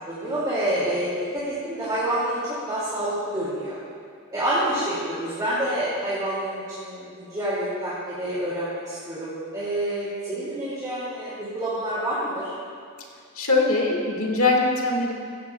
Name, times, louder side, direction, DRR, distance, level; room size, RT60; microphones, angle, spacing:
voice 1, 0.1-2.4 2.7-3.8 4.3-12.5, right 1 dB, 20° right, -10 dB, 2.6 m, -28 dB
voice 2, 13.4-15.1, left 3 dB, 70° left, 0 dB, 2.0 m, -22 dB
16.0 x 14.5 x 2.4 m, 2.3 s
head